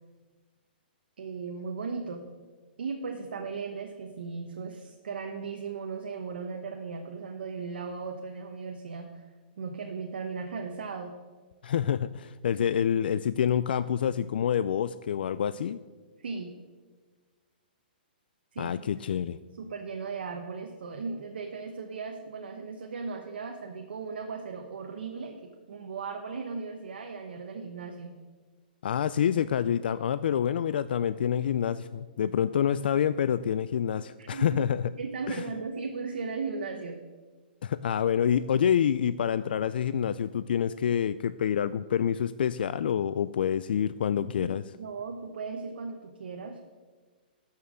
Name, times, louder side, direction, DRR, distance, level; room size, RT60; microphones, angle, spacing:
voice 1, 1.2-2.2 2.8-9.3 9.6-11.1 16.2-16.5 18.5-18.8 19.6-25.4 25.7-28.2 34.2-34.6 35.0-37.0 44.4-44.5 44.8-46.6, right 5 dB, 80° right, 3 dB, 1.1 m, -37 dB
voice 2, 11.6-15.8 18.6-19.4 28.8-34.9 35.3-35.4 37.6-44.6, left 8 dB, 70° left, 14 dB, 0.3 m, -27 dB
12.5 x 5.6 x 6.4 m, 1.4 s
hypercardioid pair, 160°, 5 cm